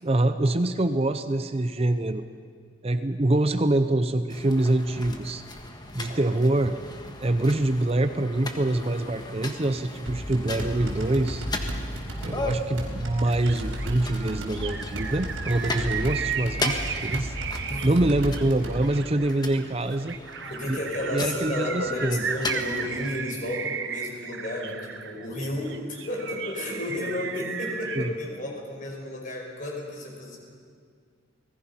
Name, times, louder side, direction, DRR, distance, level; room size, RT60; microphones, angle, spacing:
voice 1, 0.0-2.2 2.8-5.4 5.9-6.7 7.2-11.5 12.2-20.2 20.7-20.8 21.1-22.2 27.9-28.1, right 1 dB, 30° right, 9 dB, 0.7 m, -25 dB
sound 1, 4.3-23.1, left 2 dB, 20° left, 1.6 m, -37 dB
sound 2, 10.1-18.8, equal, 90° right, 4.8 m, -34 dB
sound 3, 13.3-28.1, right 6 dB, 60° right, 1.1 m, -35 dB
voice 2, 17.7-18.0 20.4-30.4, left 1 dB, 40° left, 0 dB, 5.3 m, -32 dB
30.0 x 20.0 x 5.7 m, 2.1 s
head